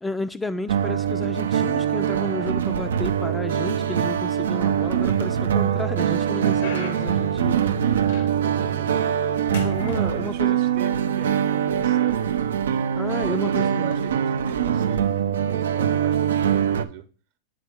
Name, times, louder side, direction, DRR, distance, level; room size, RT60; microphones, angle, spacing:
voice 1, 0.0-7.7 9.6-10.6 13.0-13.9, left 2 dB, 10° left, 0.3 m, -32 dB
sound 1, 0.7-16.8, right 9 dB, 85° right, 0.4 m, -23 dB
sound 2, 4.7-5.4 5.9-8.6 9.0-9.3 9.5-10.8 11.6-11.7 12.4-12.6 13.8-14.0, left 4 dB, 85° left, 1.2 m, -39 dB
voice 2, 8.3-9.1 10.1-12.3 13.1-17.1, right 11 dB, 60° right, 0.9 m, -40 dB
8.4 x 3.5 x 3.5 m
hypercardioid pair, 120°, 0 cm